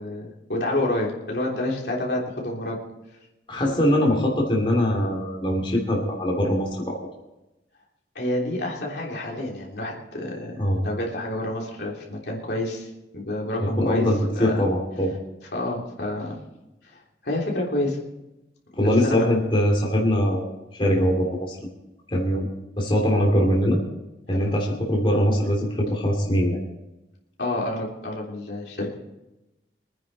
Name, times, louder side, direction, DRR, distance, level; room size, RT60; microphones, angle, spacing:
voice 1, 0.0-2.8 3.6-4.1 8.2-14.6 15.5-16.4 16.8-18.0 18.8-19.3 24.3-24.5 27.4-29.0, left 1 dB, 65° left, -2 dB, 3.4 m, -29 dB
voice 2, 3.5-7.0 10.6-10.8 13.6-15.1 18.8-21.7 22.1-22.5 22.8-23.8 24.3-26.6, equal, 30° left, -1 dB, 2.9 m, -22 dB
24.5 x 10.0 x 4.2 m, 0.97 s
head